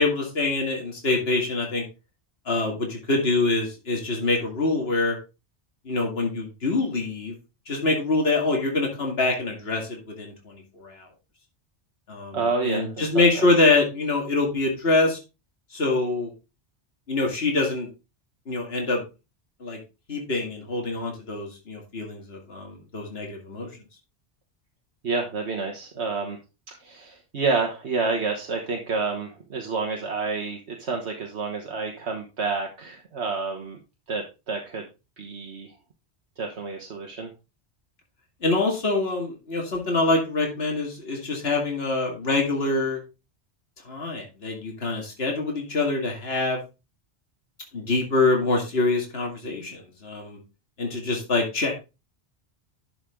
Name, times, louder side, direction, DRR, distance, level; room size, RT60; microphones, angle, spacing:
voice 1, 0.0-1.8 2.5-5.2 5.9-7.3 7.7-11.1 12.1-15.2 15.7-16.3 17.1-17.9 18.5-19.0 19.6-19.8 20.1-23.7 38.4-43.0 43.9-46.6 47.7-50.4 50.8-51.7, left 3 dB, 65° left, 0 dB, 2.4 m, -25 dB
voice 2, 12.3-13.5 25.0-26.4 26.8-33.8 34.1-34.8 35.2-35.7 36.4-37.3, right 4 dB, 75° right, 1 dB, 1.6 m, -29 dB
11.5 x 5.9 x 3.7 m, 0.28 s
omnidirectional pair, 1.1 m